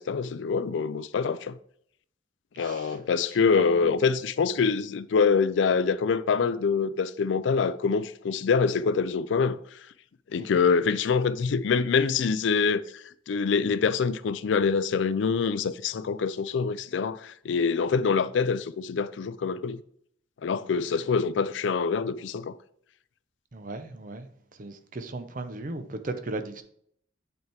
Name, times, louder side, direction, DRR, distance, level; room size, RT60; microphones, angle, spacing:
voice 1, 0.0-1.6 2.6-9.6 10.3-19.8 20.4-22.5, left 5 dB, 65° left, 0.4 m, -25 dB
voice 2, 2.6-3.0 3.6-3.9 10.4-10.5 23.5-24.3 24.6-26.6, right 2 dB, 45° right, 0.7 m, -36 dB
8.0 x 4.5 x 3.4 m
head